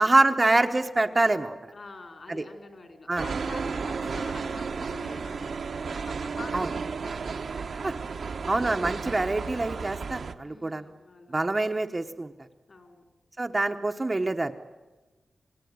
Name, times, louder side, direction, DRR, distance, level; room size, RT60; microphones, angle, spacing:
voice 1, 0.0-1.5 2.3-2.4 3.1-3.3 6.5-6.7 7.8-7.9 8.5-10.9 11.3-12.3 13.4-14.5, right 2 dB, 25° right, 6 dB, 1.0 m, -25 dB
voice 2, 1.7-7.3 7.7-8.4 10.4-11.4 12.7-13.0, left 3 dB, 45° left, 6 dB, 3.9 m, -46 dB
sound 1, 3.2-10.3, right 5 dB, 65° right, 1.2 m, -33 dB
Keyboard (musical), 4.0-7.5, left 3 dB, 65° left, 7.3 m, -56 dB
27.5 x 19.0 x 9.6 m, 1.2 s
wide cardioid pair, 125°, 0 cm